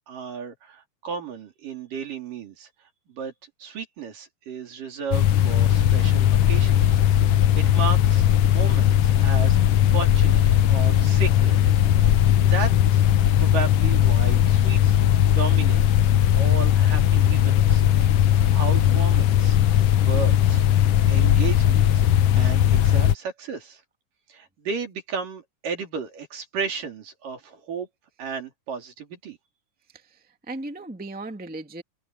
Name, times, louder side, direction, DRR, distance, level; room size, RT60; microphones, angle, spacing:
voice 1, 0.0-2.7 3.1-3.3 3.6-7.0 7.3-8.2 8.5-9.6 9.9-10.4 10.7-11.6 12.2-13.0 13.4-17.8 18.1-18.2 18.5-19.6 20.0-20.6 21.1-22.1 22.3-23.8 24.3-27.9 28.2-29.4, right 6 dB, 75° right, 5.0 m, -34 dB
sound 1, 5.1-23.1, left 11 dB, 85° left, 1.3 m, -18 dB
voice 2, 29.9-31.8, right 2 dB, 5° right, 1.4 m, -37 dB
omnidirectional pair, 3.8 m